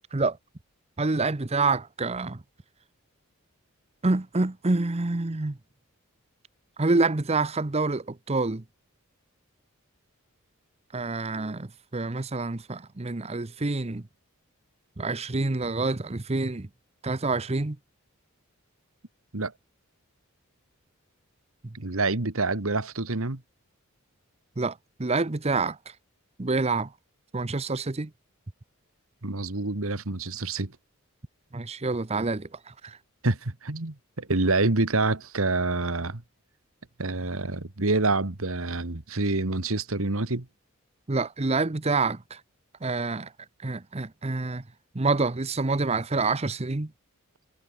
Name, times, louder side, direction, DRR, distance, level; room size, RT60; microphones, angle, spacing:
voice 1, 1.0-2.4 4.0-5.6 6.8-8.6 10.9-14.0 15.0-16.7 17.0-17.8 24.6-25.8 26.4-26.9 27.3-28.1 31.5-33.0 41.1-42.4 42.8-43.3 43.6-44.6 44.9-46.9, right 3 dB, 30° right, 0.8 m, -27 dB
voice 2, 21.7-23.4 29.2-30.7 33.2-36.2 37.0-40.5, right 3 dB, 70° right, 1.8 m, -27 dB
head